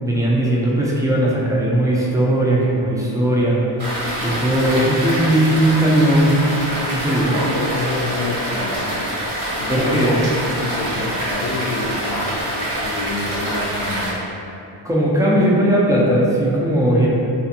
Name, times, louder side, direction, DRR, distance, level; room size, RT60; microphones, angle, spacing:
voice 1, 0.0-3.6 4.2-6.4 6.8-7.4 9.7-10.2 14.8-17.1, right 1 dB, 5° right, -5 dB, 0.4 m, -18 dB
sound 1, 3.8-14.1, equal, 70° right, 1.2 m, -25 dB
voice 2, 7.3-9.0 9.6-10.1 10.5-12.2 12.8-14.2 16.8-17.1, left 2 dB, 75° left, -6 dB, 0.5 m, -28 dB
2.6 x 2.4 x 2.6 m, 2.7 s
cardioid pair, 80°, 49 cm